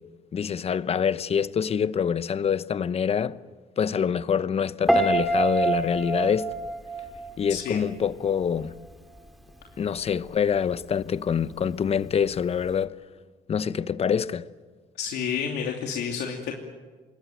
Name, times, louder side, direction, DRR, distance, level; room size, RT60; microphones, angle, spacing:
voice 1, 0.3-3.4 3.8-6.5 7.4-8.7 9.8-13.0 13.5-14.5, left 7 dB, 35° left, 0.9 m, -25 dB
Piano, 4.9-8.0 8.3-8.7, right 2 dB, ahead, 2.8 m, -26 dB
voice 2, 7.5-7.9 15.0-16.5, left 7 dB, 75° left, 3.0 m, -30 dB
26.0 x 21.5 x 9.3 m
cardioid pair, 110°, 17 cm